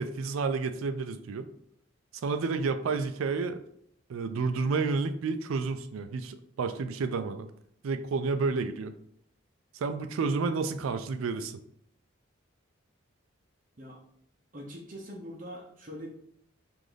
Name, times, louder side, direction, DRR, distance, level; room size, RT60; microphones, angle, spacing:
voice 1, 0.0-1.5 2.1-3.6 4.1-7.5 7.8-8.9 9.7-11.6, right 4 dB, 80° right, 9 dB, 0.4 m, -30 dB
voice 2, 14.5-16.1, equal, 40° right, -3 dB, 0.7 m, -42 dB
4.9 x 2.5 x 3.8 m, 0.70 s
head